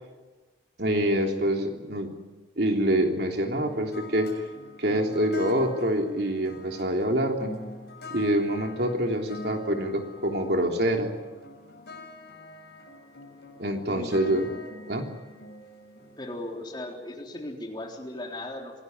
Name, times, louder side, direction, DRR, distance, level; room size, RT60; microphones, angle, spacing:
voice 1, 0.8-2.1 2.6-4.4 4.8-7.5 8.1-11.1 13.6-14.4 14.9-15.1, right 1 dB, 60° right, 3 dB, 3.2 m, -26 dB
sound 1, 3.6-16.7, left 2 dB, 60° left, 6.3 m, -45 dB
voice 2, 13.9-14.5 16.2-18.7, left 1 dB, 25° left, 1 dB, 3.7 m, -37 dB
26.0 x 18.0 x 9.6 m, 1.3 s
head